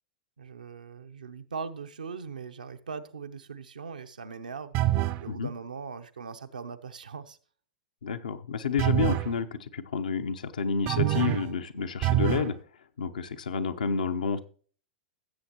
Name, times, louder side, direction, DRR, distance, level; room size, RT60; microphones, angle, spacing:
voice 1, 0.4-4.9 5.2-7.4, right 5 dB, 80° right, 0.8 m, -40 dB
sound 1, 4.7-5.3 8.8-9.3 10.9-11.5 12.0-12.5, right 14 dB, 40° right, 0.5 m, -25 dB
voice 2, 8.0-12.6 13.0-14.4, left 6 dB, 75° left, 0.9 m, -30 dB
17.0 x 7.7 x 3.0 m
figure-of-eight pair, 100°, 4 cm